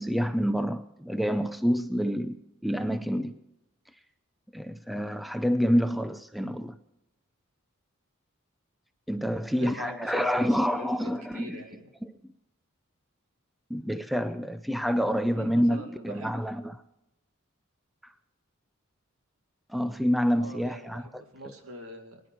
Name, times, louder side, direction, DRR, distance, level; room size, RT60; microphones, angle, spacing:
voice 1, 0.0-2.4 2.6-3.4 4.5-6.8 9.1-11.6 13.7-16.8 19.7-21.2, equal, ahead, 0.5 m, -27 dB
voice 2, 9.5-11.9 15.3-16.4 20.3-22.2, right 1 dB, 80° right, 2.2 m, -43 dB
22.5 x 10.5 x 4.5 m
head